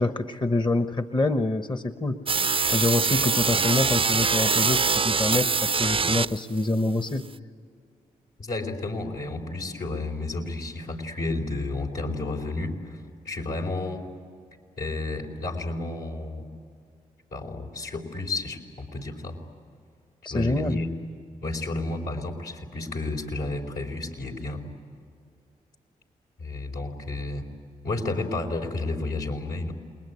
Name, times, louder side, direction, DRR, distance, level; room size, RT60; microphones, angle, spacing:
voice 1, 0.0-2.2 2.7-7.2 20.2-20.8, left 2 dB, 30° left, 9 dB, 1.2 m, -26 dB
sound 1, 2.3-6.6, right 5 dB, 35° right, 0.6 m, -23 dB
voice 2, 8.4-14.0 14.8-16.4 17.3-19.4 20.3-20.9 21.4-24.6 26.4-27.5 27.8-29.7, left 2 dB, 75° left, -1 dB, 4.3 m, -31 dB
29.0 x 21.0 x 9.6 m, 2.2 s
supercardioid pair, 40°, 16 cm